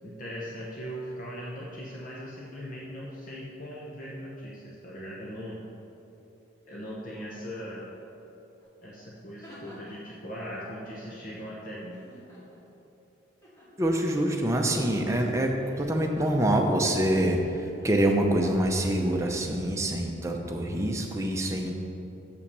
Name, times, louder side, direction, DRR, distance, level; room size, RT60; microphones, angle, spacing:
voice 1, 0.0-5.6 6.7-7.9 8.8-12.0, equal, 40° left, -5 dB, 0.9 m, -39 dB
sound 1, 8.6-8.7 9.1-10.1 11.9-12.8 13.4-13.7 14.4-14.9 15.6-16.0 17.4-18.4 19.0-19.5, right 1 dB, 15° left, 2.1 m, -49 dB
voice 2, 13.8-21.8, right 1 dB, 15° right, 1 dB, 0.7 m, -26 dB
7.0 x 5.8 x 6.7 m, 2.9 s
head